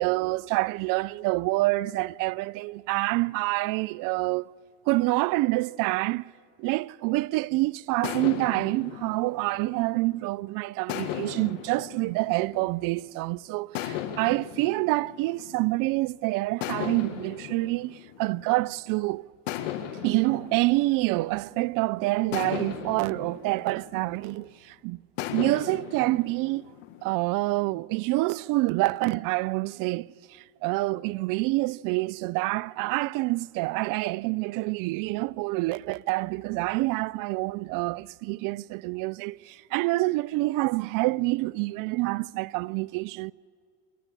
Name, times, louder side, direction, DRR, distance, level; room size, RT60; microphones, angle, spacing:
voice 1, 0.0-4.5 4.9-6.2 6.6-19.2 20.0-25.0 25.3-26.6 27.0-43.3, right 21 dB, 60° right, 0.5 m, -27 dB
sound 1, 8.0-10.3 10.9-13.1 13.7-16.0 16.6-18.9 19.5-21.7 22.3-24.6 25.2-27.0, left 11 dB, 85° left, 1.7 m, -37 dB
28.5 x 10.0 x 9.8 m
supercardioid pair, 90°, 37 cm